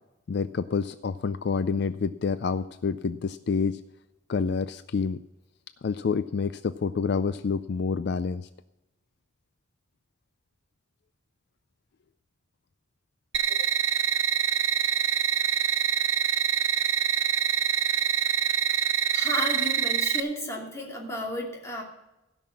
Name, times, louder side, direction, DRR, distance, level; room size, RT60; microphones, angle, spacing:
voice 1, 0.3-3.8 4.3-5.2 5.8-8.5 13.5-13.7, left 5 dB, 60° left, 13 dB, 0.4 m, -28 dB
sound 1, 13.3-20.2, right 9 dB, 85° right, 0.6 m, -25 dB
voice 2, 19.1-21.8, left 1 dB, 15° left, -1 dB, 2.7 m, -32 dB
16.0 x 6.1 x 7.2 m, 0.96 s
head